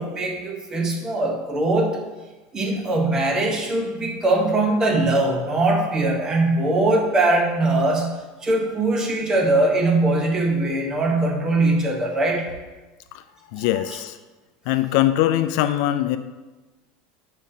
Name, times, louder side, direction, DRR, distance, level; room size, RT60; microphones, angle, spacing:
voice 1, 0.0-2.0 2.5-8.2 8.4-12.5, right 2 dB, 20° right, 1 dB, 1.0 m, -21 dB
voice 2, 13.5-14.2 14.7-16.2, left 13 dB, 65° left, 10 dB, 0.3 m, -21 dB
7.1 x 5.1 x 2.8 m, 1.2 s
supercardioid pair, 140°, 3 cm